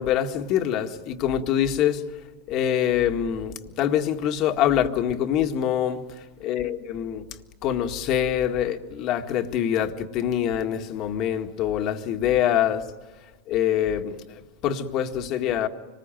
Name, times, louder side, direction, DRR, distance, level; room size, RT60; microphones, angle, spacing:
voice 1, 0.0-2.0 2.5-6.0 6.4-7.3 7.6-12.8 13.5-15.7, left 10 dB, 50° left, 1.8 m, -25 dB
26.0 x 20.0 x 9.2 m
hypercardioid pair, 110°, 0 cm